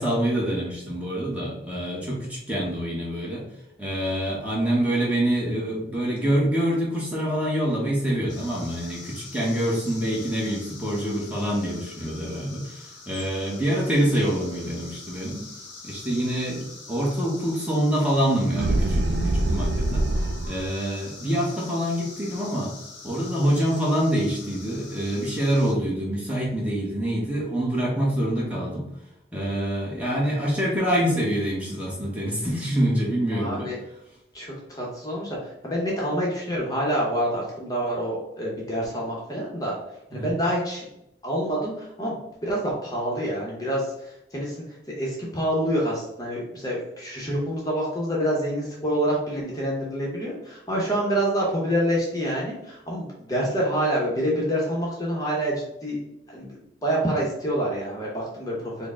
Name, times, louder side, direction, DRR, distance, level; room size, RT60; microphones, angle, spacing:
voice 1, 0.0-3.4 3.8-15.5 15.8-20.0 20.5-22.7 23.0-28.9 29.3-33.7 40.1-40.4, equal, 10° right, -4 dB, 0.9 m, -26 dB
sound 1, 8.3-25.7, left 3 dB, 85° left, 0.8 m, -44 dB
sound 2, 18.5-20.7, right 1 dB, 70° right, 0.4 m, -24 dB
voice 2, 33.3-33.8 34.3-39.8 40.1-40.9 41.2-44.6 45.0-56.0 56.3-58.9, equal, 20° left, -3 dB, 0.7 m, -27 dB
4.3 x 2.1 x 3.5 m, 0.84 s
head